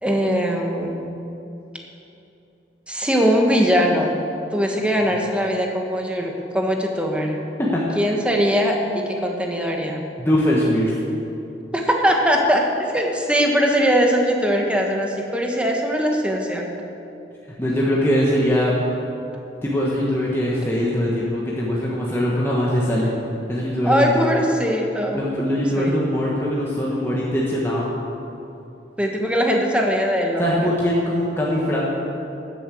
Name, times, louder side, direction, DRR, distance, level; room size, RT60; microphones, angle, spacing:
voice 1, 0.0-1.1 2.9-4.1 4.5-7.4 7.9-10.0 11.7-12.6 12.9-16.6 23.8-25.2 25.8-25.9 29.0-30.7, equal, 5° right, 1 dB, 1.5 m, -21 dB
voice 2, 10.2-10.9 17.6-18.7 19.6-23.1 23.5-24.3 25.1-27.9 30.4-31.9, equal, 15° left, -5 dB, 1.5 m, -21 dB
13.0 x 8.6 x 7.7 m, 2.9 s
head